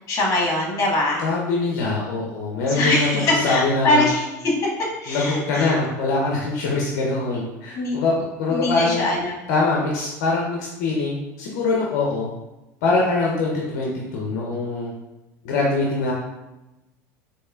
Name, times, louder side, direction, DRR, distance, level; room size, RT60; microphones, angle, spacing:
voice 1, 0.1-1.2 2.7-4.3 5.0-5.7 7.7-8.0 8.5-9.3, left 2 dB, 40° left, -2 dB, 1.4 m, -22 dB
voice 2, 1.2-4.1 5.1-9.1 9.5-12.3 12.8-14.9 15.4-16.1, left 3 dB, 70° left, -2 dB, 0.6 m, -23 dB
4.1 x 2.8 x 2.3 m, 0.99 s
hypercardioid pair, 95°, 9 cm